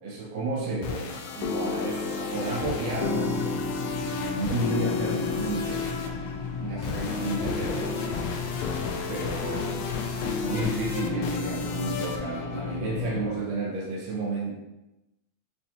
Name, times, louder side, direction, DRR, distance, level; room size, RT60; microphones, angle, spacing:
voice 1, 0.0-3.5 4.3-6.1 6.6-8.2 9.1-14.6, right 2 dB, 70° right, -5 dB, 1.9 m, -32 dB
sound 1, 0.6-13.4, left 4 dB, 90° left, 1.4 m, -32 dB
sound 2, 2.9-13.3, left 7 dB, 75° left, 1.5 m, -37 dB
6.7 x 2.4 x 2.9 m, 0.97 s
omnidirectional pair, 3.4 m